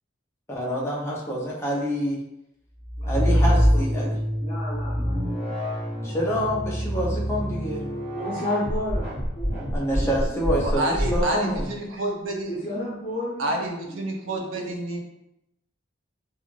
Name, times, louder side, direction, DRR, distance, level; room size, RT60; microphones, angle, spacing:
voice 1, 0.5-2.2 3.0-4.2 6.0-7.8 9.7-11.7, equal, 15° left, -4 dB, 0.6 m, -27 dB
sound 1, 2.8-4.2 4.7-11.7, equal, 10° right, 1.3 m, -26 dB
voice 2, 3.0-5.6 8.1-9.7 10.0-10.5 12.4-14.7, left 1 dB, 30° left, -10 dB, 0.9 m, -34 dB
sound 2, 3.1-10.2, equal, 25° right, 0.6 m, -32 dB
voice 3, 10.6-12.5 13.4-15.0, right 1 dB, 80° right, 1 dB, 0.6 m, -28 dB
2.5 x 2.4 x 3.0 m, 0.85 s
head